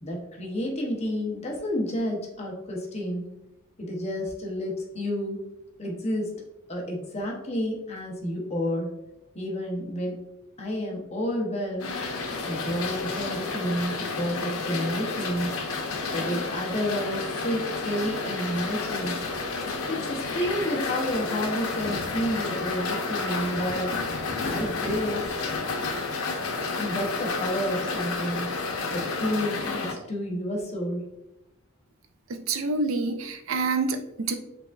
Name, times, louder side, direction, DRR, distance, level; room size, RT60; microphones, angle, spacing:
voice 1, 0.0-3.3 3.8-5.4 5.8-6.3 6.7-8.9 9.3-10.2 10.6-11.9 12.4-15.6 16.1-19.2 19.9-24.0 24.4-25.3 26.8-28.5 28.9-31.1, equal, 30° left, -1 dB, 0.8 m, -30 dB
sound 1, 11.8-29.9, left 3 dB, 90° left, 0.7 m, -31 dB
voice 2, 32.3-34.3, right 3 dB, 70° right, 8 dB, 0.4 m, -27 dB
4.8 x 3.5 x 2.4 m, 0.91 s
head